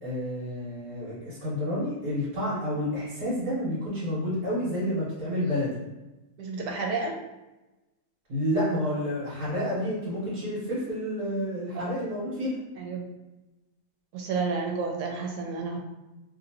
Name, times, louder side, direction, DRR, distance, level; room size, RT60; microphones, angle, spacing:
voice 1, 0.0-5.7 8.3-12.6, equal, 65° right, -10 dB, 1.5 m, -29 dB
voice 2, 6.4-7.1 11.7-12.1 12.8-13.1 14.1-15.8, right 4 dB, 85° right, 1 dB, 1.2 m, -31 dB
2.8 x 2.6 x 2.8 m, 1.0 s
omnidirectional pair, 1.8 m